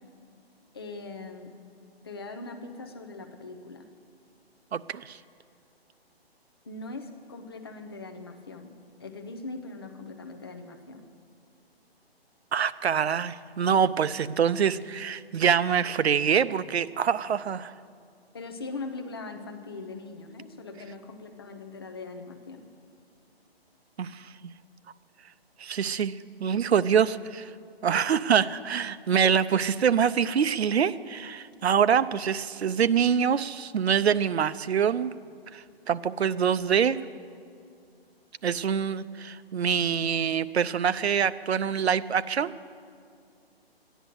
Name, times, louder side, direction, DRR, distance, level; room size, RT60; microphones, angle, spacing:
voice 1, 0.7-1.5 2.0-3.9 6.6-8.7 9.0-11.1 18.3-22.6, left 3 dB, 25° left, 5 dB, 0.7 m, -40 dB
voice 2, 4.7-5.2 12.5-17.7 24.0-24.3 25.6-27.5 27.8-35.1 35.5-37.0 38.4-42.5, right 7 dB, 85° right, 14 dB, 0.6 m, -25 dB
13.5 x 10.0 x 7.7 m, 2.3 s
hypercardioid pair, 170°, 31 cm